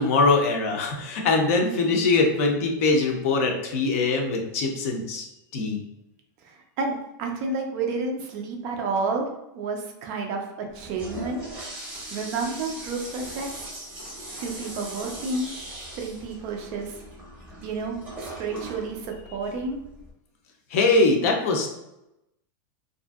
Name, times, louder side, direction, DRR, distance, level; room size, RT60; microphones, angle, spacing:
voice 1, 0.0-5.3 5.5-5.8 14.0-14.1 20.7-21.7, left 3 dB, 45° left, 3 dB, 0.5 m, -22 dB
voice 2, 6.4-9.3 9.5-10.5 10.7-11.4 12.1-13.7 14.4-15.5 15.9-17.0 17.6-19.8, right 3 dB, 30° right, 2 dB, 0.3 m, -30 dB
Toilet flush, 10.7-20.1, right 1 dB, 10° right, 0.7 m, -39 dB
2.7 x 2.5 x 2.3 m, 0.89 s
supercardioid pair, 175°, 11 cm